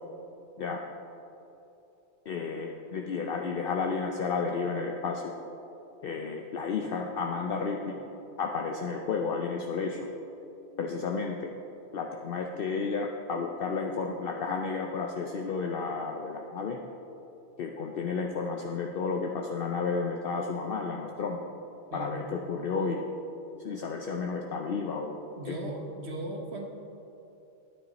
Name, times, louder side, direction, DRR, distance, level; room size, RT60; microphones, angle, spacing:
voice 1, 2.3-5.3 6.0-8.0 8.4-10.1 10.8-11.5 11.9-16.8 17.6-21.4 21.9-23.0 23.6-25.6, left 4 dB, 60° left, 2 dB, 0.8 m, -32 dB
voice 2, 25.4-26.6, right 1 dB, 75° right, 1 dB, 1.5 m, -37 dB
10.5 x 9.2 x 4.1 m, 3.0 s
omnidirectional pair, 1.1 m